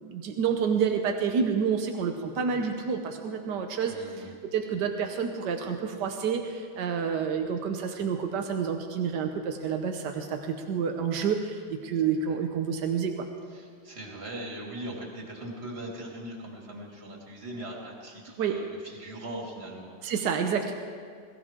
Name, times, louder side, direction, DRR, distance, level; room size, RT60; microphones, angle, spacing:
voice 1, 0.0-3.9 4.5-13.1 18.4-18.6 20.0-20.7, right 6 dB, 85° right, 4 dB, 1.6 m, -29 dB
voice 2, 3.9-4.3 12.1-12.4 13.5-20.2, right 1 dB, 35° right, -2 dB, 2.9 m, -40 dB
21.5 x 15.5 x 3.7 m, 2.1 s
omnidirectional pair, 1.8 m